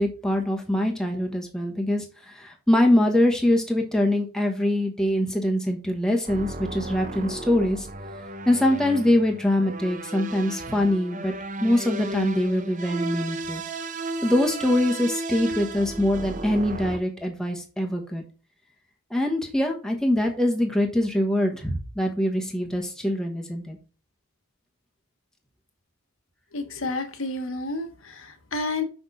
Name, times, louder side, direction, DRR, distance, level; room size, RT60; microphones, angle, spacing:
voice 1, 0.0-7.9 8.5-11.3 11.6-13.6 14.2-18.2 19.1-23.8, left 1 dB, 5° left, 1 dB, 1.2 m, -23 dB
sound 1, 6.3-17.0, right 2 dB, 35° right, 0.7 m, -34 dB
voice 2, 26.5-28.8, left 2 dB, 60° left, 6 dB, 1.3 m, -30 dB
6.0 x 6.0 x 4.1 m, 0.35 s
head